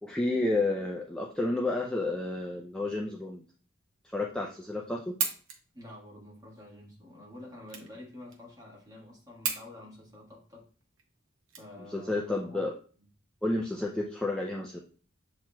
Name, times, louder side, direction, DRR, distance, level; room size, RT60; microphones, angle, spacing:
voice 1, 0.0-3.4 4.0-5.1 11.9-12.8 13.4-14.8, left 2 dB, 5° left, 0.4 m, -31 dB
sound 1, 5.0-12.2, right 6 dB, 75° right, 0.8 m, -38 dB
voice 2, 5.7-10.7 11.6-12.6, left 1 dB, 20° right, 1.5 m, -48 dB
7.3 x 3.0 x 2.2 m
head